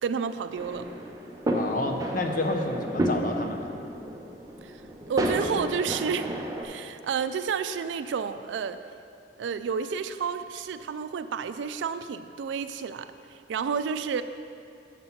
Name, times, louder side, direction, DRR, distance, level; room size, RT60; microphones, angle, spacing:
voice 1, 0.0-0.9 4.6-4.8 5.1-6.3 6.6-8.8 9.4-14.2, right 6 dB, 90° right, 11 dB, 0.3 m, -30 dB
sound 1, 0.5-6.7, right 1 dB, 20° right, 0.5 m, -31 dB
voice 2, 1.5-3.7, left 2 dB, 50° left, 5 dB, 0.5 m, -30 dB
5.9 x 5.4 x 5.7 m, 2.5 s
head